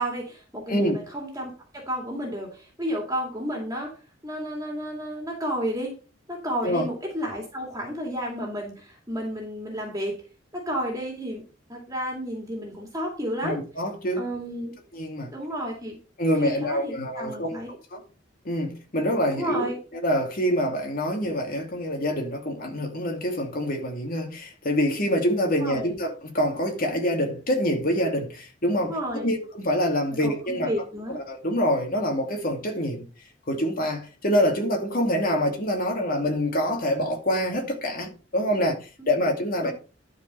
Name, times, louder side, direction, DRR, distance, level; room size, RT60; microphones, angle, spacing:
voice 1, 0.0-3.9 4.2-5.9 6.3-10.1 10.5-11.4 11.7-13.6 14.1-14.7 15.3-16.0 16.4-17.7 19.3-19.8 25.6-26.0 28.8-29.3 30.2-31.2 39.6-39.7, equal, 20° right, 2.4 m, -32 dB
voice 2, 13.4-14.3 14.9-15.3 16.2-17.6 17.9-18.0 18.4-30.7 31.3-33.1 33.5-38.8 39.1-39.7, equal, 50° left, 2.5 m, -26 dB
11.5 x 4.8 x 5.4 m
head